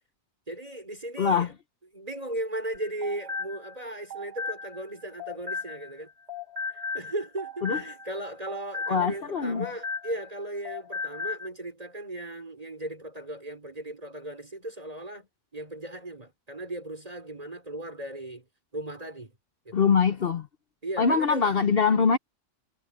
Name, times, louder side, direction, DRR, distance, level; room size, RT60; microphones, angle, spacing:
voice 1, 0.5-1.5 1.9-6.1 6.7-18.5 18.7-19.3 19.6-19.9 20.8-21.5, right 1 dB, 30° right, 4.3 m, -37 dB
voice 2, 1.2-1.5 7.6-7.8 8.9-9.7 19.7-20.5 21.0-22.2, left 5 dB, 55° left, 1.0 m, -23 dB
sound 1, 2.7-6.0 6.3-10.4 10.6-11.5, left 4 dB, 65° right, 7.3 m, -36 dB
omnidirectional pair, 1.2 m